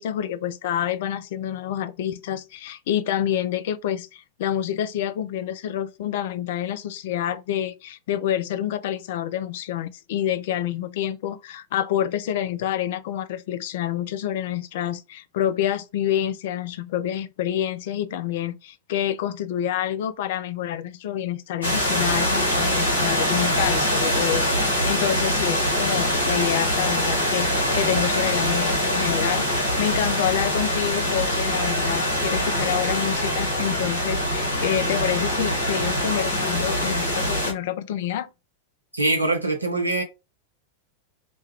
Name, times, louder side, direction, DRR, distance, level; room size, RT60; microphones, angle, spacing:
voice 1, 0.0-38.3, left 11 dB, 55° left, 0.3 m, -28 dB
sound 1, 21.6-37.5, equal, 80° left, 1.2 m, -23 dB
voice 2, 38.9-40.0, right 2 dB, 85° right, 0.8 m, -23 dB
3.2 x 2.2 x 3.0 m
figure-of-eight pair, 90°, 0 cm